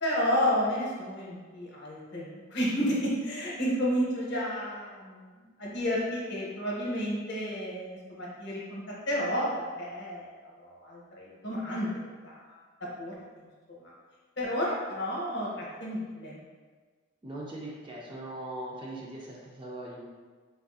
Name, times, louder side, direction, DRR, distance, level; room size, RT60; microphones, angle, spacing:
voice 1, 0.0-9.5 9.8-11.9 12.2-12.6 13.0-13.2 13.8-13.9 14.4-16.4, equal, 55° left, -4 dB, 0.8 m, -31 dB
voice 2, 17.2-20.1, right 1 dB, 25° right, -3 dB, 0.4 m, -40 dB
3.6 x 2.5 x 2.3 m, 1.4 s
head